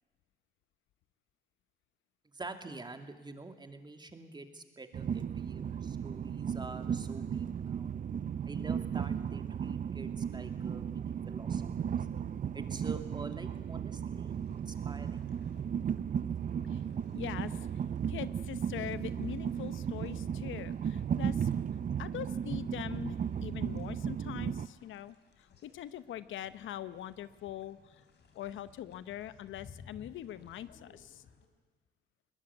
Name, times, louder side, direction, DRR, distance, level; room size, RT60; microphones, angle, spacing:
voice 1, 2.3-7.9 8.5-12.0 12.5-15.3, right 3 dB, 20° right, 7 dB, 2.5 m, -47 dB
Train, 4.9-24.7, right 8 dB, 40° right, 0.7 m, -35 dB
sound 1, 14.3-31.5, left 5 dB, 60° left, 3.4 m, -61 dB
voice 2, 17.1-17.7 18.1-21.5 22.0-28.0 28.3-31.2, left 11 dB, 75° left, 14 dB, 0.9 m, -42 dB
21.0 x 20.5 x 9.6 m, 1.3 s
cardioid pair, 90°, 20 cm